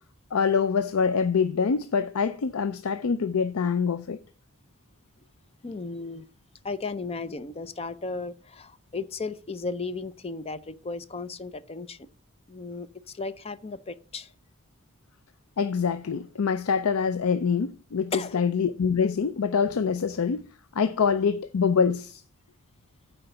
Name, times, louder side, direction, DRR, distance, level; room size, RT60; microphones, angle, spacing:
voice 1, 0.3-4.2 15.6-20.4 20.8-22.2, left 6 dB, 85° left, 0.5 m, -25 dB
voice 2, 5.6-6.3 6.6-12.0 12.5-14.3 18.1-18.4, left 3 dB, 30° left, 0.5 m, -35 dB
9.0 x 4.5 x 6.7 m
head